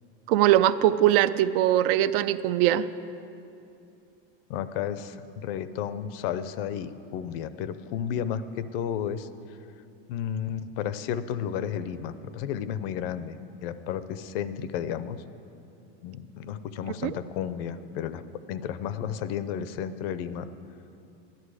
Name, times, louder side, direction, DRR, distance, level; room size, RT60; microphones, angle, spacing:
voice 1, 0.3-2.9 17.0-17.1, right 12 dB, 70° right, 14 dB, 0.5 m, -21 dB
voice 2, 4.5-9.3 10.1-15.2 16.0-18.2 18.5-20.5, left 9 dB, 70° left, 13 dB, 0.6 m, -32 dB
13.5 x 10.5 x 4.8 m, 2.7 s
cardioid pair, 170°, 30 cm